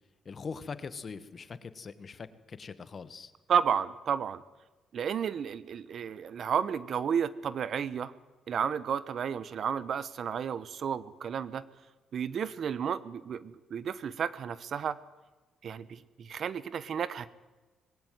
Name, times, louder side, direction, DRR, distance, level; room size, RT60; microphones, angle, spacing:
voice 1, 0.2-3.3, left 5 dB, 40° left, 14 dB, 1.5 m, -42 dB
voice 2, 3.5-4.4 4.9-8.1 8.5-11.6 12.1-15.0 15.6-17.3, right 7 dB, 60° right, 17 dB, 1.0 m, -32 dB
20.0 x 16.5 x 9.4 m, 1.2 s
cardioid pair, 90°, 0 cm